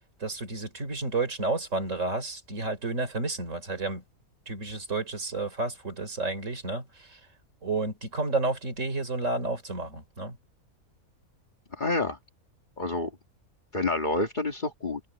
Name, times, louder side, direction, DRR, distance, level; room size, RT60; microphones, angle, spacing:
voice 1, 0.2-4.0 4.5-7.2 7.6-10.4, right 3 dB, 60° right, 3.9 m, -31 dB
voice 2, 11.8-12.2 12.8-13.1 13.7-15.0, left 2 dB, 35° left, 1.8 m, -28 dB
omnidirectional pair, 1.5 m